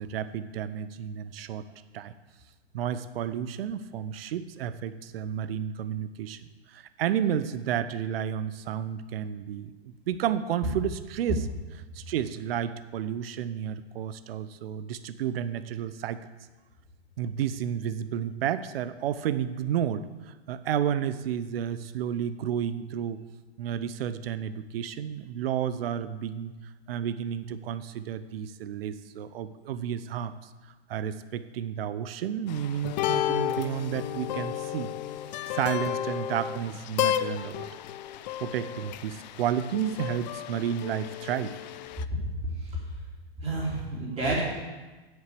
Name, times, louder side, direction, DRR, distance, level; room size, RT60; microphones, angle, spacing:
voice 1, 0.0-1.7 1.9-2.1 2.7-6.4 6.7-11.5 11.9-16.2 17.2-23.2 23.6-26.5 26.9-30.3 30.9-34.9 35.5-37.7 38.4-41.5, right 9 dB, 60° right, 13 dB, 0.7 m, -31 dB
sound 1, 32.5-42.0, left 12 dB, 45° left, 0.4 m, -32 dB
voice 2, 42.2-42.7 43.4-44.4, right 2 dB, 20° right, -4 dB, 3.3 m, -30 dB
8.0 x 6.8 x 6.7 m, 1.2 s
hypercardioid pair, 130°, 33 cm